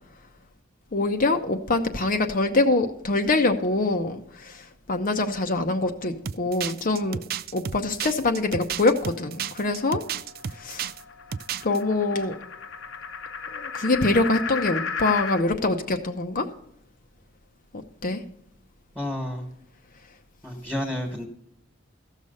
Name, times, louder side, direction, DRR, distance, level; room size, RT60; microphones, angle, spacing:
voice 1, 0.9-7.2 7.5-10.0 10.5-10.9 11.6-12.4 13.5-16.5 18.0-18.2, left 2 dB, 45° left, 5 dB, 0.8 m, -24 dB
sound 1, 6.3-11.0 11.3-11.8, right 8 dB, 50° right, 0.4 m, -32 dB
sound 2, 8.7-15.4, left 5 dB, 75° left, 1.0 m, -35 dB
voice 2, 18.9-19.5 20.4-21.3, left 1 dB, 10° right, 1 dB, 1.6 m, -30 dB
14.5 x 6.5 x 5.4 m, 0.74 s
head